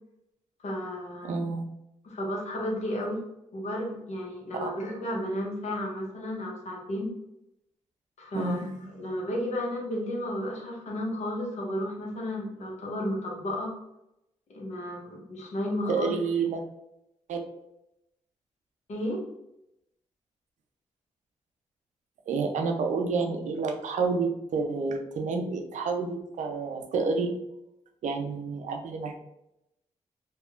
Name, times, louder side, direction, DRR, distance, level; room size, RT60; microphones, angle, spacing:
voice 1, 0.6-1.5 2.0-3.2 3.5-7.1 8.2-8.6 8.9-13.7 14.5-16.1 18.9-19.2, left 1 dB, 60° left, -2 dB, 0.9 m, -33 dB
voice 2, 1.2-1.6 4.6-4.7 8.3-8.7 15.9-16.6 17.3-17.4 22.3-27.3 28.0-29.2, right 4 dB, 70° right, 4 dB, 0.4 m, -29 dB
2.8 x 2.3 x 2.3 m, 0.85 s
supercardioid pair, 50°, 13 cm